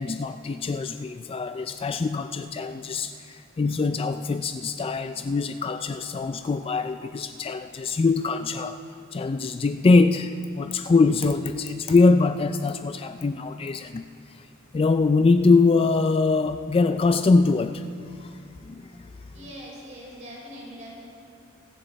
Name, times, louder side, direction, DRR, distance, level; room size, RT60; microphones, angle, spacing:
voice 1, 0.0-8.8 9.1-14.0 14.3-14.4 14.7-17.9 18.2-18.4 18.7-18.9 19.4-19.5, left 3 dB, 25° left, 10 dB, 0.3 m, -23 dB
voice 2, 19.3-21.0, equal, 35° right, -4 dB, 4.5 m, -42 dB
25.5 x 10.0 x 4.1 m, 2.3 s
head